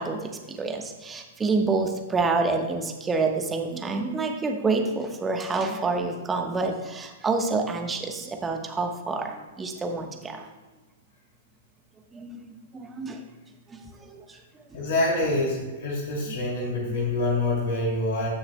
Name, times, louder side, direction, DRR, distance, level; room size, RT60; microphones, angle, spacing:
voice 1, 0.0-10.5 12.1-13.2 13.7-14.4 14.7-14.8, right 3 dB, 15° right, 3 dB, 1.1 m, -28 dB
voice 2, 14.7-18.3, left 2 dB, 65° left, -2 dB, 2.5 m, -26 dB
16.0 x 6.2 x 2.2 m, 1.2 s
hypercardioid pair, 115°, 0 cm